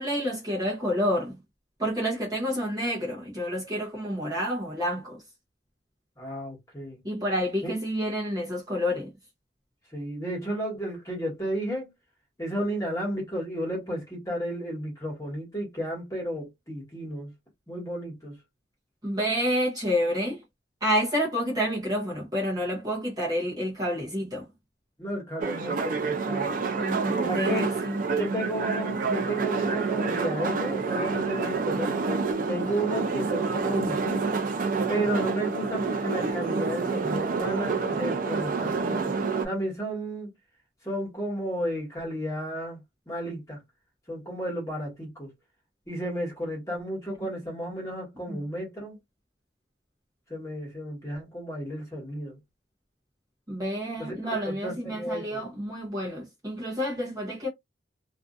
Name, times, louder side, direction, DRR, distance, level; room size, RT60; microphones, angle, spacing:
voice 1, 0.0-1.4 1.8-5.2 7.0-9.1 19.0-20.4 20.8-24.5 26.8-28.0 48.3-48.4 53.5-57.5, equal, 20° right, 0.8 m, -29 dB
voice 2, 6.2-7.0 7.6-7.7 9.9-11.9 12.4-17.3 17.7-18.4 25.0-26.5 27.2-27.7 28.2-34.3 34.9-39.2 39.4-40.3 40.8-42.8 43.1-43.6 44.1-45.3 45.9-49.0 50.3-52.4 54.0-55.4, right 1 dB, 15° left, 1.3 m, -33 dB
sound 1, 25.4-39.5, right 4 dB, 45° right, 0.4 m, -28 dB
2.5 x 2.4 x 2.4 m
head